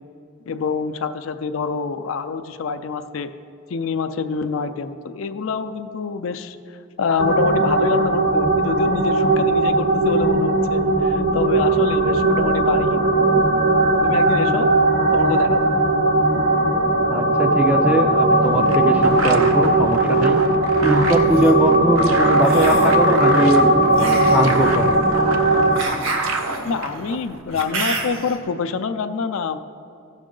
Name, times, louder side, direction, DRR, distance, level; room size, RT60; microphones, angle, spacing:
voice 1, 0.5-3.3 3.7-13.1 14.0-14.7 15.1-15.8 26.6-29.6, left 5 dB, 70° left, 9 dB, 0.4 m, -26 dB
sound 1, 7.2-25.8, right 2 dB, 45° right, 0.8 m, -18 dB
voice 2, 17.1-20.4 20.8-23.8 24.3-25.0, right 1 dB, 5° right, 5 dB, 0.4 m, -21 dB
sound 2, 18.2-27.4, right 4 dB, 85° right, 0.7 m, -30 dB
sound 3, 21.0-21.5 22.4-23.0 23.9-28.3, right 2 dB, 65° right, 1.2 m, -29 dB
15.0 x 6.2 x 3.8 m, 2.5 s
head